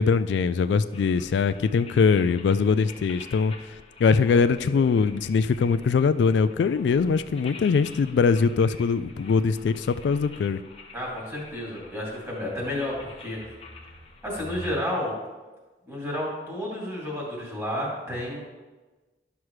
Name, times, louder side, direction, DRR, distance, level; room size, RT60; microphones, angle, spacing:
voice 1, 0.0-3.5 4.0-10.6, left 5 dB, 80° left, 12 dB, 0.3 m, -22 dB
sound 1, 0.9-14.7, left 2 dB, 35° left, 0.9 m, -46 dB
voice 2, 4.1-4.4 10.9-13.4 14.2-15.1 15.9-18.4, left 1 dB, 15° right, -5 dB, 2.6 m, -31 dB
11.5 x 6.0 x 3.2 m, 1.2 s
head